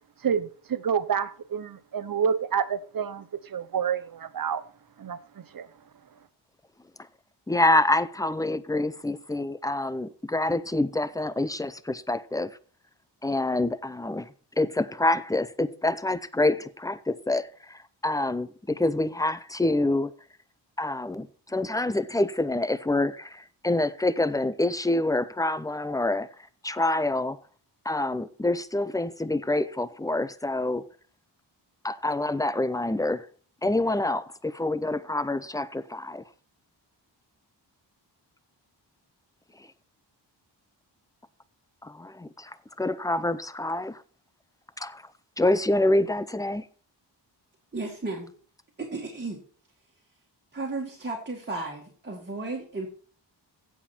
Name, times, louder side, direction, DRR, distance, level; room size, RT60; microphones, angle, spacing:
voice 1, 0.2-4.6 5.0-5.7, right 7 dB, 50° right, 0.8 m, -28 dB
voice 2, 7.5-12.5 13.2-14.3 14.6-20.1 20.8-26.3 26.6-27.4 27.8-30.8 31.8-33.3 33.6-36.2 41.8-44.0 44.8-45.0 45.4-46.6, left 2 dB, 10° left, 0.5 m, -26 dB
voice 3, 47.7-48.3 48.8-49.4 50.5-52.9, right 3 dB, 25° right, 2.0 m, -34 dB
16.0 x 7.2 x 4.4 m
wide cardioid pair, 160°, 43 cm